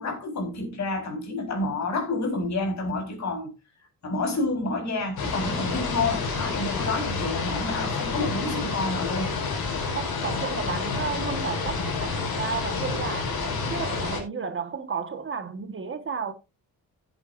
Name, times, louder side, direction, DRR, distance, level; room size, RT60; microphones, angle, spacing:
voice 1, 0.0-3.5 4.0-9.3, left 2 dB, 50° left, 4.3 m, -29 dB
sound 1, 5.2-14.2, left 4 dB, 80° left, 4.6 m, -29 dB
voice 2, 9.9-16.3, right 5 dB, 35° right, 1.4 m, -33 dB
16.0 x 8.8 x 2.5 m
cardioid pair, 160°, 36 cm